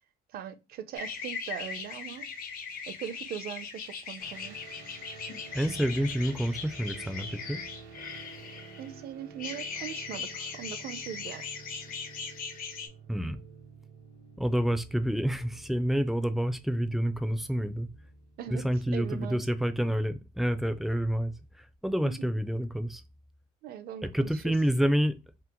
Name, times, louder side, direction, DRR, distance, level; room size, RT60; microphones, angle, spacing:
voice 1, 0.3-2.3 2.9-4.6 8.8-11.5 18.4-19.4 22.0-22.3 23.6-24.5, right 9 dB, 65° right, 0.5 m, -40 dB
sound 1, 0.9-8.9 9.4-12.9, left 5 dB, 60° left, 0.8 m, -39 dB
sound 2, 4.2-18.4, right 5 dB, 80° right, 1.0 m, -50 dB
voice 2, 5.5-7.6 13.1-13.4 14.4-17.9 18.5-21.3 21.6-23.0 24.0-25.2, equal, ahead, 0.3 m, -28 dB
2.9 x 2.0 x 3.5 m
cardioid pair, 110°, 17 cm